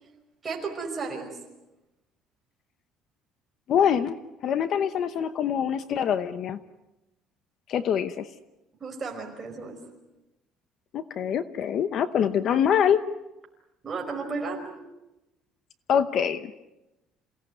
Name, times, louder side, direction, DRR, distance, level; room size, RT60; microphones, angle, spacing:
voice 1, 0.4-1.4 8.8-9.8 13.8-14.7, right 4 dB, 20° right, 0 dB, 5.2 m, -33 dB
voice 2, 3.7-6.6 7.7-8.3 10.9-13.0 15.9-16.5, left 8 dB, 45° left, 12 dB, 0.8 m, -25 dB
28.0 x 17.5 x 9.5 m, 0.98 s
cardioid pair, 170°, 0 cm